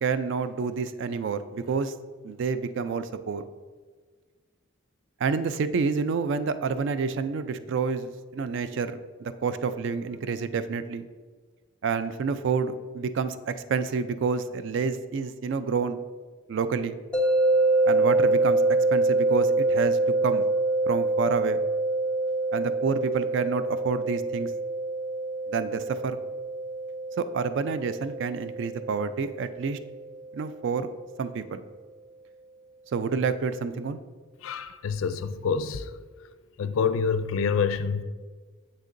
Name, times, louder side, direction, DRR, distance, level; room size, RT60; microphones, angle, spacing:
voice 1, 0.0-1.9 2.2-3.4 5.2-11.1 11.8-16.0 16.5-17.0 17.8-20.5 20.9-21.6 22.5-24.5 25.5-26.2 27.2-29.8 30.3-30.9 31.2-31.6 32.9-34.0, right 5 dB, 60° right, 12 dB, 0.3 m, -28 dB
sound 1, 17.1-30.2, right 2 dB, 5° left, 0.6 m, -26 dB
voice 2, 34.4-35.9 36.6-38.0, left 6 dB, 75° left, 12 dB, 0.4 m, -27 dB
7.3 x 6.5 x 2.5 m, 1.5 s
head